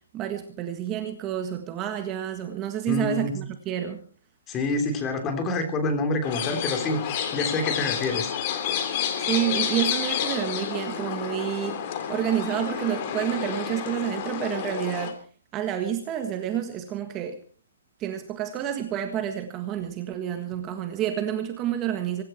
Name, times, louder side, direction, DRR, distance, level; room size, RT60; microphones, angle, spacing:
voice 1, 0.1-4.0 9.2-11.8 12.1-15.2 15.5-17.4 18.0-22.2, right 10 dB, 20° right, 6 dB, 1.6 m, -29 dB
voice 2, 2.9-3.4 4.5-8.3, left 2 dB, 15° left, 7 dB, 3.3 m, -27 dB
sound 1, 6.2-15.1, left 8 dB, 30° left, 3.3 m, -30 dB
24.0 x 12.5 x 4.5 m, 0.42 s
hypercardioid pair, 165°, 0 cm